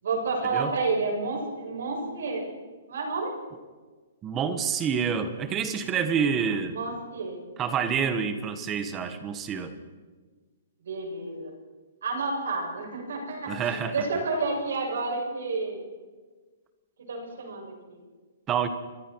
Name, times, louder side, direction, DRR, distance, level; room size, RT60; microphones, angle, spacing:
voice 1, 0.0-2.4 2.9-3.3 6.7-7.4 8.4-8.6 10.9-11.5 12.0-15.8 17.1-18.0, right 3 dB, 70° right, 1 dB, 7.0 m, -30 dB
voice 2, 4.2-6.8 7.6-9.7 13.5-14.1 18.5-18.7, right 7 dB, 15° right, 10 dB, 1.2 m, -28 dB
29.0 x 23.5 x 4.6 m, 1.4 s
hypercardioid pair, 175°, 0 cm